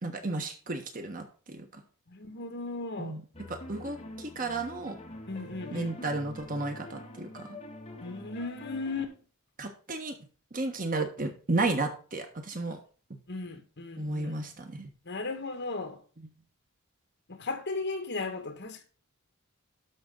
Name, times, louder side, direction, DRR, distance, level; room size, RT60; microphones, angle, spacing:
voice 1, 0.0-1.8 3.0-3.2 3.5-5.0 5.7-7.6 9.6-10.1 10.5-12.8 14.0-14.9, right 2 dB, 40° right, 1.4 m, -33 dB
voice 2, 2.1-3.2 5.3-6.0 8.0-9.1 13.3-14.4 15.1-16.0 17.3-18.8, left 3 dB, 55° left, 1.9 m, -36 dB
sound 1, 3.3-9.1, left 1 dB, 30° left, 1.9 m, -45 dB
12.0 x 6.1 x 3.9 m
head